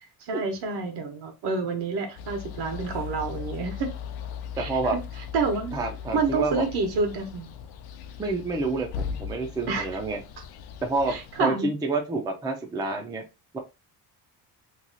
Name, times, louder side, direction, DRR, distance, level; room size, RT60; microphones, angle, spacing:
voice 1, 0.2-3.9 4.6-5.0 5.3-5.8 6.1-7.5 9.7-9.9 11.1-11.7, right 4 dB, 75° right, 1.2 m, -28 dB
sound 1, 2.2-11.4, left 7 dB, 65° left, 0.6 m, -38 dB
voice 2, 4.6-5.0 5.7-6.6 8.2-10.2 10.8-13.2 13.5-13.6, right 3 dB, 10° right, 0.4 m, -28 dB
3.0 x 2.3 x 3.9 m
cardioid pair, 170°, 40 cm